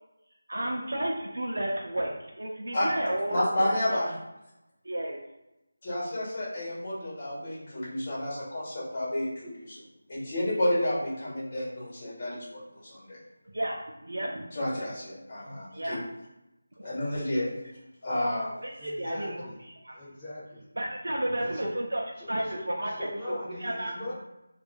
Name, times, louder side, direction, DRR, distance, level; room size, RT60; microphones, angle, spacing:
voice 1, 0.5-4.0 4.8-5.2 13.5-14.5 15.7-16.0 16.8-16.9 18.6-20.0 20.8-22.0 22.3-23.9, right 1 dB, 80° right, -1 dB, 0.5 m, -32 dB
voice 2, 3.3-4.1 5.8-13.2 14.5-16.0 16.8-17.5 18.0-18.5, left 1 dB, 30° left, -7 dB, 1.4 m, -31 dB
voice 3, 18.8-19.6 19.9-20.6 21.4-21.8 22.2-22.6 22.9-24.1, left 1 dB, 10° left, -12 dB, 1.0 m, -39 dB
3.5 x 2.4 x 2.3 m, 0.93 s
figure-of-eight pair, 170°, 0 cm